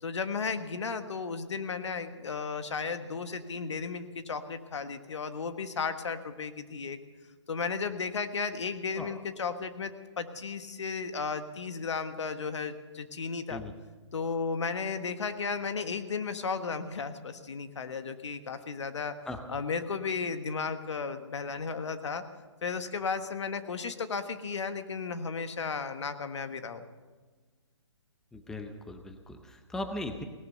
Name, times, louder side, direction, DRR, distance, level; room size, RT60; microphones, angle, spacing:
voice 1, 0.0-7.0 7.5-13.6 14.1-19.1 19.5-22.2 22.6-26.8, left 5 dB, 70° left, 9 dB, 1.4 m, -34 dB
voice 2, 28.3-30.2, left 1 dB, 5° left, 6 dB, 0.6 m, -38 dB
18.0 x 12.0 x 6.8 m, 1.4 s
hypercardioid pair, 150°, 15 cm